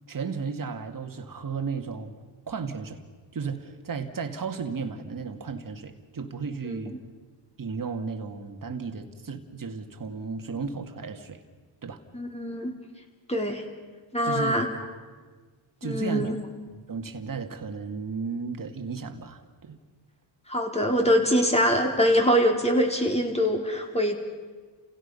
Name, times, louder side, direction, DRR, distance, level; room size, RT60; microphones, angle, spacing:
voice 1, 0.1-2.1 2.5-3.0 3.3-7.0 7.6-11.4 11.8-12.0 14.2-14.6 15.8-16.4 16.7-19.8, right 5 dB, 45° right, 6 dB, 2.3 m, -34 dB
voice 2, 12.1-12.7 13.3-13.6 14.1-14.7 15.8-16.3 20.5-24.1, equal, 15° left, 2 dB, 3.9 m, -24 dB
30.0 x 16.5 x 5.6 m, 1.4 s
cardioid pair, 65°, 47 cm